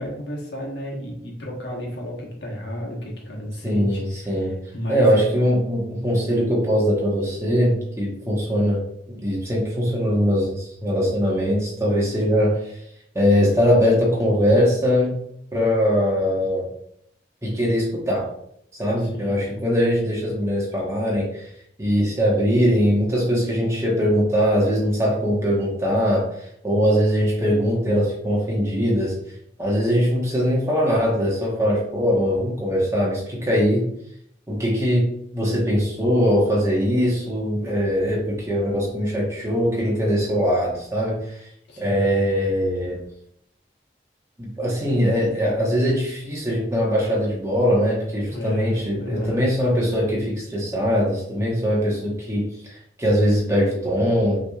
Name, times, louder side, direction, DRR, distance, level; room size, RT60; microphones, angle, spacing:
voice 1, 0.0-5.2 19.0-19.5 41.7-42.0 48.3-49.5, equal, 75° left, -1 dB, 1.3 m, -32 dB
voice 2, 3.6-4.5 4.9-8.8 9.1-12.8 13.1-15.2 15.5-16.7 17.4-18.3 18.7-21.5 21.8-29.1 29.6-33.9 34.5-35.1 35.3-41.5 41.8-43.0 44.4-54.4, equal, 15° right, -4 dB, 1.2 m, -21 dB
5.9 x 3.2 x 2.4 m, 0.72 s
head